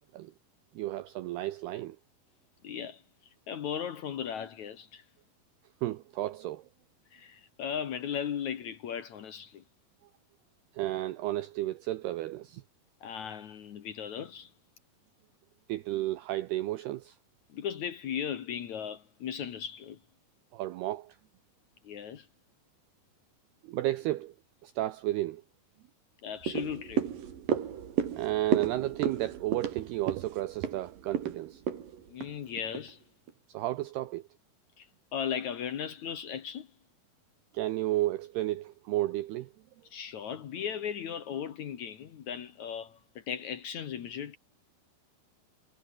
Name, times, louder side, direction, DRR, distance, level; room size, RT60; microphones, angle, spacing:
voice 1, 0.8-2.0 5.8-6.6 10.7-12.6 15.7-17.2 20.5-21.2 23.6-24.3 24.6-25.4 28.1-31.6 33.5-34.2 37.5-39.5, right 16 dB, 85° right, 2.3 m, -32 dB
voice 2, 2.6-3.0 3.5-5.0 7.1-9.6 13.0-14.5 17.5-20.0 21.8-22.3 26.2-27.1 32.1-33.0 34.8-36.7 39.9-44.4, left 8 dB, 65° left, 1.9 m, -37 dB
sound 1, 26.4-32.9 33.3-33.4, right 8 dB, 50° right, 3.7 m, -33 dB
omnidirectional pair, 5.7 m